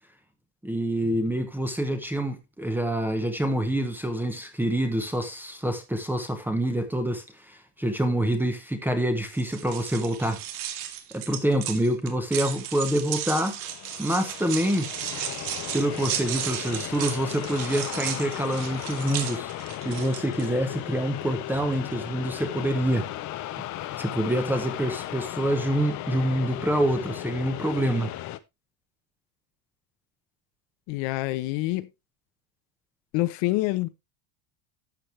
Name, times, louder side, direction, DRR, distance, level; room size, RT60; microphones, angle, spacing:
voice 1, 0.6-10.4 11.1-13.6 14.0-14.9 15.7-19.5 19.8-23.1 24.0-28.1, right 1 dB, 5° right, 0.8 m, -26 dB
sound 1, 9.3-20.5, right 11 dB, 80° right, 2.2 m, -35 dB
sound 2, 13.6-28.4, left 14 dB, 35° left, 0.7 m, -36 dB
voice 2, 30.9-31.9 33.1-33.9, left 19 dB, 60° left, 1.0 m, -26 dB
12.0 x 7.6 x 3.2 m
cardioid pair, 175°, 50 cm